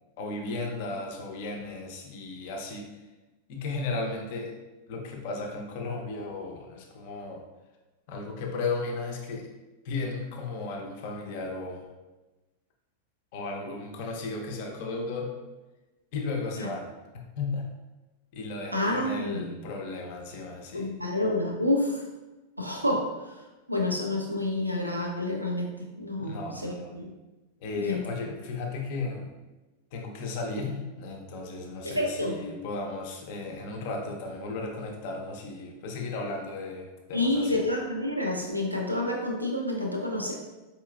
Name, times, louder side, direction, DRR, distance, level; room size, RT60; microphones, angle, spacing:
voice 1, 0.2-2.9 3.5-4.5 4.9-7.4 8.1-9.5 9.8-11.9 13.3-15.3 16.1-16.9 17.4-17.7 18.3-20.9 26.2-26.9 27.6-29.3 29.9-37.6, left 3 dB, 50° left, 1 dB, 0.6 m, -35 dB
voice 2, 18.7-19.4 20.7-22.0 22.6-23.3 23.7-27.1 27.8-28.0 31.8-32.3 37.1-40.3, left 1 dB, 85° right, 0 dB, 0.5 m, -29 dB
4.6 x 2.9 x 2.3 m, 1.1 s
figure-of-eight pair, 90°, 0 cm